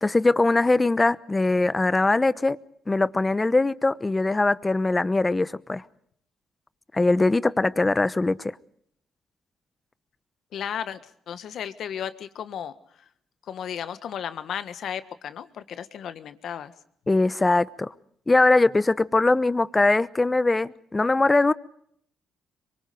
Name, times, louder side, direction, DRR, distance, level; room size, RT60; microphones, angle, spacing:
voice 1, 0.0-2.6 2.9-5.8 6.9-8.5 17.1-17.9 18.3-21.5, left 2 dB, 20° left, 16 dB, 0.9 m, -21 dB
voice 2, 10.5-11.0 11.3-12.7 13.5-16.7, left 9 dB, 70° left, 11 dB, 1.5 m, -34 dB
26.0 x 23.5 x 5.2 m, 0.68 s
cardioid pair, 75°, 0 cm